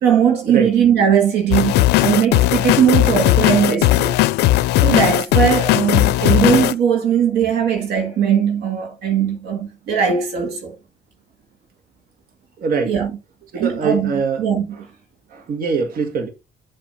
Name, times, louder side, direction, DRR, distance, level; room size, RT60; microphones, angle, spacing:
voice 1, 0.0-4.1 4.8-10.7 12.9-13.2 13.6-14.1 14.4-14.7, right 8 dB, 75° right, 1.9 m, -18 dB
sound 1, 1.5-6.7, left 16 dB, 80° left, 0.4 m, -16 dB
voice 2, 12.6-12.9 13.5-14.4 15.3-16.3, right 5 dB, 60° right, 1.9 m, -22 dB
7.4 x 3.3 x 5.5 m
cardioid pair, 110°, 17 cm